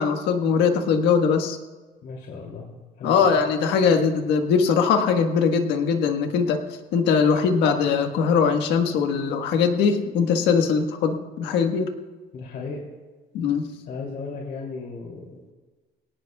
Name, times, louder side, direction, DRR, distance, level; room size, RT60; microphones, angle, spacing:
voice 1, 0.0-1.6 3.0-6.6 6.9-11.9 13.3-13.7, left 6 dB, 90° left, 5 dB, 1.5 m, -21 dB
voice 2, 2.0-3.4 12.3-12.8 13.7-15.4, left 4 dB, 65° left, -2 dB, 2.8 m, -36 dB
22.5 x 18.0 x 2.3 m, 1.3 s
cardioid pair, 110°, 17 cm